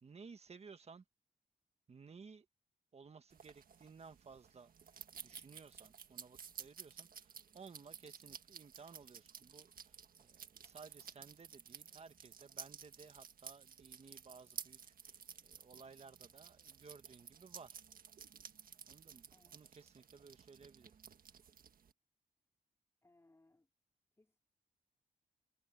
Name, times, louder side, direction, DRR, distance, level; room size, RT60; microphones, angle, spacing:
voice 1, 0.0-1.0 1.9-2.5 2.9-4.7 5.2-17.8 18.9-21.0, right 5 dB, 40° right, 1.5 m, -57 dB
sound 1, 3.3-21.9, right 7 dB, 65° right, 1.6 m, -54 dB
voice 2, 23.0-23.7 24.1-24.4, left 2 dB, 15° left, 4.2 m, -70 dB
wide cardioid pair, 140°, 16 cm